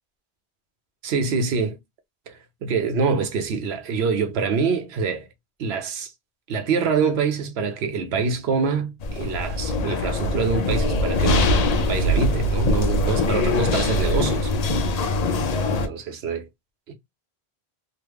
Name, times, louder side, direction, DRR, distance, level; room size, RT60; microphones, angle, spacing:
voice 1, 1.0-1.8 2.3-5.3 5.6-6.1 6.5-14.5 14.9-15.1 15.4-16.5 16.9-17.0, right 5 dB, 75° right, 1.0 m, -25 dB
sound 1, 9.0-15.9, left 1 dB, 55° left, 0.5 m, -22 dB
3.0 x 2.1 x 3.3 m
omnidirectional pair, 1.1 m